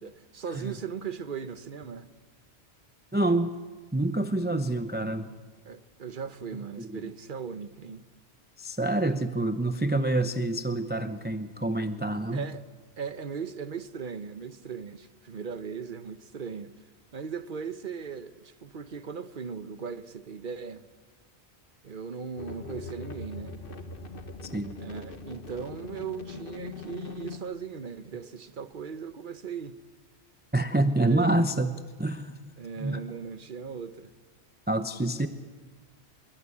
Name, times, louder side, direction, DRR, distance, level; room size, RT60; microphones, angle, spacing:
voice 1, 0.0-2.1 4.5-4.6 5.6-8.0 12.3-12.7 13.0-16.7 17.1-20.9 21.8-23.6 24.8-29.8 30.9-31.3 32.6-34.1 35.2-35.3, right 6 dB, 50° right, 1.1 m, -38 dB
voice 2, 3.1-3.5 3.9-5.3 6.8-7.1 8.6-12.5 24.4-24.8 30.5-32.5 32.8-33.0 34.7-35.3, right 2 dB, 10° right, 0.7 m, -27 dB
sound 1, 22.4-27.4, left 3 dB, 55° left, 1.7 m, -41 dB
25.5 x 22.0 x 8.6 m
omnidirectional pair, 1.1 m